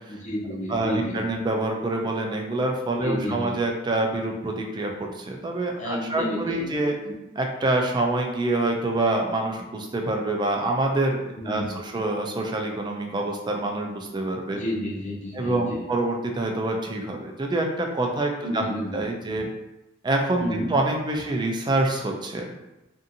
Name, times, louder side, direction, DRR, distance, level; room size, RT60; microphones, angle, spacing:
voice 1, 0.1-1.2 3.0-3.6 5.8-6.7 11.4-11.7 14.5-15.8 18.4-19.0 20.4-20.7, equal, 35° left, -2 dB, 0.6 m, -30 dB
voice 2, 0.7-7.0 7.4-14.6 15.3-19.5 20.0-22.5, right 2 dB, 20° right, 2 dB, 0.3 m, -26 dB
2.6 x 2.5 x 2.6 m, 0.96 s
head